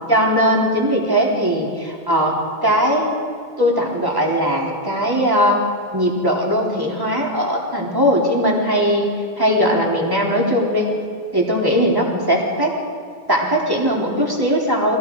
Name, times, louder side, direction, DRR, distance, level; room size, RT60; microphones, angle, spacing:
voice 1, 0.1-2.4 2.6-3.2 3.6-5.6 5.9-9.1 9.4-10.9 11.3-12.7 13.3-15.0, equal, 20° right, -2 dB, 3.8 m, -19 dB
29.0 x 20.5 x 4.8 m, 2.3 s
omnidirectional pair, 1.1 m